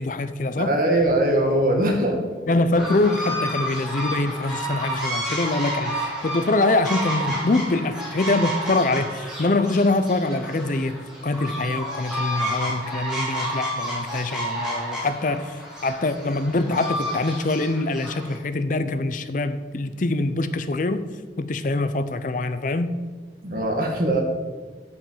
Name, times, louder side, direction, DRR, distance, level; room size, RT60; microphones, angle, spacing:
voice 1, 0.0-0.8 2.5-15.5 15.8-21.0 21.4-22.9, left 2 dB, 45° left, 0.5 m, -24 dB
voice 2, 0.6-2.2 23.4-24.2, right 1 dB, 50° right, 1.6 m, -21 dB
sound 1, 2.7-18.3, equal, 5° right, 2.5 m, -30 dB
8.3 x 5.2 x 7.2 m
head